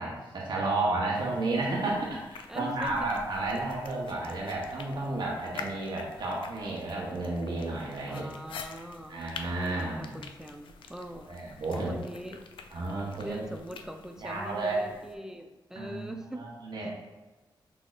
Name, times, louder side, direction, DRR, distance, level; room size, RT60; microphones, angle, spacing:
voice 1, 0.0-8.3 9.1-10.2 11.2-12.0 12.7-13.4 14.2-14.8 15.8-16.9, right 2 dB, 65° right, -4 dB, 1.0 m, -32 dB
sound 1, 1.1-15.1, left 5 dB, 85° left, 0.4 m, -48 dB
voice 2, 1.1-1.4 2.5-3.1 5.5-5.7 8.0-9.3 9.6-11.3 11.7-12.4 13.2-16.4 16.8-17.1, equal, 5° right, 4 dB, 0.5 m, -43 dB
6.1 x 3.5 x 2.5 m, 1.2 s
cardioid pair, 75°, 8 cm